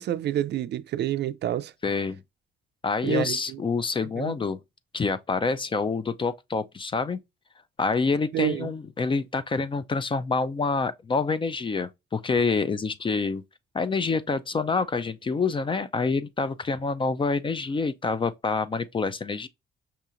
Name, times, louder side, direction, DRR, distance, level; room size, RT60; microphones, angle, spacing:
voice 1, 0.0-1.7 3.0-3.6 4.1-4.4 8.3-8.7, right 11 dB, 60° right, 0.4 m, -28 dB
voice 2, 1.8-2.2 2.8-4.6 4.9-7.2 7.8-13.4 13.7-19.5, left 4 dB, 25° left, 0.4 m, -27 dB
5.5 x 2.8 x 2.5 m
cardioid pair, 90°, 20 cm